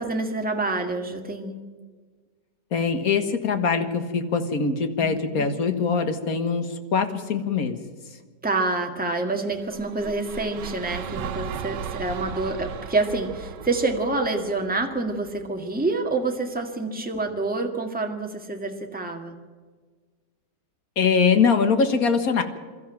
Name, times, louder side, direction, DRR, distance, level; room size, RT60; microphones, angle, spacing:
voice 1, 0.0-1.5 5.0-5.1 5.4-5.5 8.4-19.3, right 3 dB, 5° right, 3 dB, 1.7 m, -27 dB
voice 2, 2.7-7.8 21.0-22.4, left 5 dB, 55° left, 8 dB, 2.0 m, -22 dB
sound 1, 9.6-15.8, right 8 dB, 90° right, 1.5 m, -37 dB
22.5 x 13.5 x 9.1 m, 1.5 s
omnidirectional pair, 1.8 m